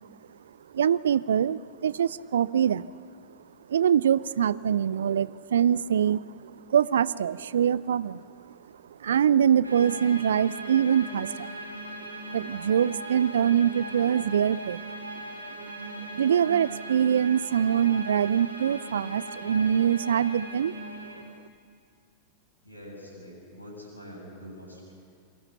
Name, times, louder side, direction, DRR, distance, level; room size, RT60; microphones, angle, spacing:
voice 1, 0.7-2.9 3.7-8.2 9.0-11.5 12.3-14.8 16.2-20.7, right 9 dB, 65° right, 20 dB, 0.6 m, -24 dB
sound 1, 9.6-21.2, right 2 dB, 85° right, 2.8 m, -39 dB
voice 2, 22.6-24.9, equal, 85° left, 0 dB, 7.8 m, -45 dB
28.0 x 24.5 x 6.7 m, 2.5 s
figure-of-eight pair, 90°, 0 cm